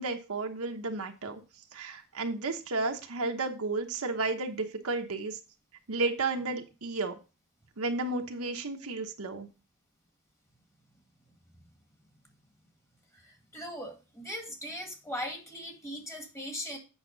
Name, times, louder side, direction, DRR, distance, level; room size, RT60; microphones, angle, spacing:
voice 1, 0.0-1.4 1.7-5.4 5.9-7.2 7.8-9.5, right 3 dB, 70° right, 4 dB, 1.0 m, -32 dB
voice 2, 13.5-16.8, equal, 15° left, 3 dB, 1.9 m, -39 dB
8.1 x 5.9 x 3.9 m, 0.31 s
head